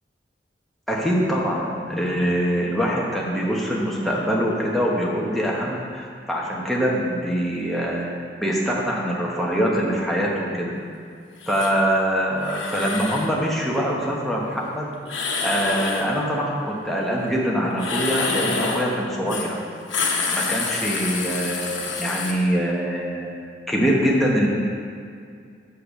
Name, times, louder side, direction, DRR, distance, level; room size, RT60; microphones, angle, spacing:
voice 1, 0.9-8.1 8.4-10.7 11.5-19.6 20.3-23.3 23.7-24.5, equal, ahead, -4 dB, 1.0 m, -24 dB
sound 1, 11.4-11.7 12.4-13.3 15.1-16.1 17.7-18.9 19.3-19.5 19.8-22.3, left 4 dB, 85° left, 1.0 m, -27 dB
6.5 x 5.8 x 6.4 m, 2.3 s
head